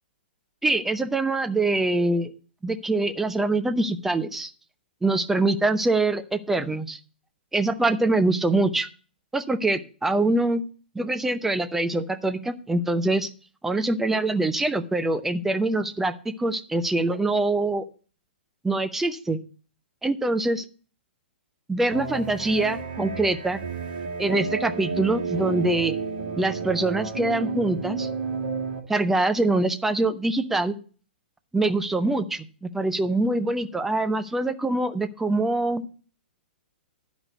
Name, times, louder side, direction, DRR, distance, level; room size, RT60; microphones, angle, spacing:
voice 1, 0.6-2.3 2.6-4.5 5.0-7.0 7.5-8.9 9.3-10.6 10.9-13.3 13.6-17.8 18.6-19.4 20.0-20.6 21.7-23.6 24.2-26.0 26.4-28.1 28.9-30.8 31.5-35.9, right 2 dB, 5° right, 9 dB, 0.7 m, -24 dB
sound 1, 21.9-28.8, right 4 dB, 50° right, 1.9 m, -31 dB
11.0 x 5.2 x 6.6 m, 0.38 s
figure-of-eight pair, 115°, 6 cm